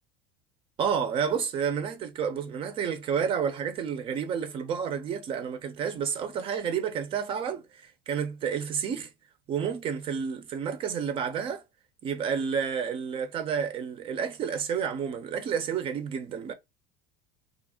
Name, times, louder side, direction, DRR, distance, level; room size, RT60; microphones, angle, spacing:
voice 1, 0.8-7.6 8.1-9.1 9.5-11.6 12.0-16.5, right 7 dB, 45° right, 0.7 m, -30 dB
2.4 x 2.0 x 3.6 m
supercardioid pair, 100°, 13 cm